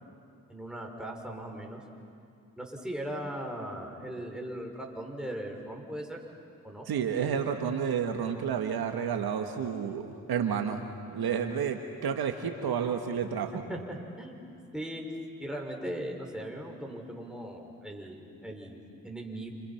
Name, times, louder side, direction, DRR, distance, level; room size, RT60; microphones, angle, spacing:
voice 1, 0.5-1.8 2.6-6.2 6.6-6.9 13.5-14.5 14.7-15.0 15.4-19.5, right 1 dB, ahead, 0 dB, 5.9 m, -39 dB
voice 2, 6.9-10.8 11.1-13.5, right 7 dB, 75° right, 5 dB, 1.7 m, -30 dB
28.5 x 27.5 x 5.9 m, 2.5 s
supercardioid pair, 50°, 38 cm